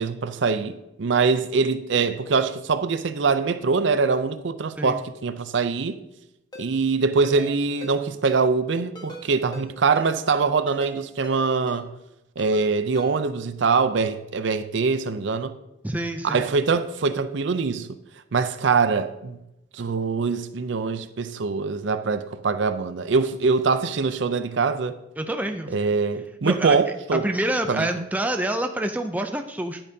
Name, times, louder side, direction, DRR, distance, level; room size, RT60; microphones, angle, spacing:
voice 1, 0.0-6.0 6.6-11.9 12.4-15.5 16.2-17.9 18.3-19.4 19.7-25.0 25.7-27.2 27.7-28.0, right 4 dB, 60° right, 0.5 m, -23 dB
Ringtone, 6.5-6.7 7.2-7.5 7.8-7.9 8.2-8.4 9.0-9.2 9.5-9.7 10.0-10.1 10.7-10.9 11.2-11.4 11.7-11.8 12.4-12.6 13.0-13.1, equal, 20° left, 1.3 m, -40 dB
voice 2, 15.8-16.5 25.2-25.7 26.4-26.8 27.1-29.8, right 1 dB, 10° right, 0.4 m, -27 dB
10.5 x 8.7 x 2.7 m
head